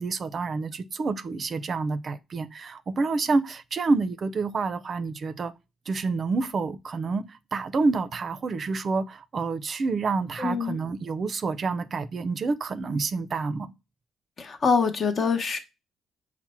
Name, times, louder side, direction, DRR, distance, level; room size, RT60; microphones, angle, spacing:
voice 1, 0.0-5.5 5.9-13.7, right 4 dB, 45° right, 0.5 m, -28 dB
voice 2, 10.4-10.8 14.4-15.6, left 5 dB, 50° left, 0.8 m, -24 dB
5.9 x 2.1 x 4.2 m
cardioid pair, 90°, 0 cm